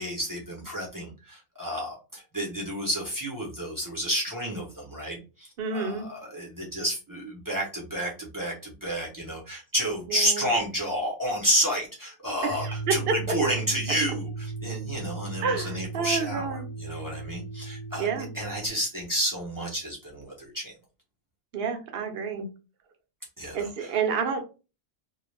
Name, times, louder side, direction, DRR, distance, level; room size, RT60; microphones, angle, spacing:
voice 1, 0.0-20.7 23.4-23.9, equal, 25° right, -3 dB, 0.5 m, -30 dB
voice 2, 5.6-6.1 10.1-10.4 12.4-13.1 15.4-16.7 18.0-18.3 21.5-22.5 23.5-24.4, right 6 dB, 60° right, 5 dB, 0.7 m, -29 dB
sound 1, 12.5-18.7, right 3 dB, 45° left, 0.6 m, -36 dB
2.3 x 2.1 x 3.0 m, 0.32 s
omnidirectional pair, 1.3 m